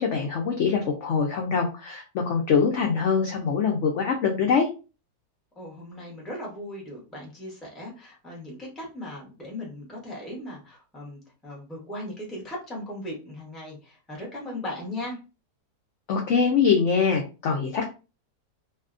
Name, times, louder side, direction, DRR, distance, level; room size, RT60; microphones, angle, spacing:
voice 1, 0.0-4.7 16.1-17.8, left 6 dB, 75° left, 1 dB, 0.6 m, -23 dB
voice 2, 5.5-15.2, left 1 dB, ahead, -2 dB, 0.5 m, -38 dB
2.6 x 2.2 x 2.4 m, 0.31 s
omnidirectional pair, 1.8 m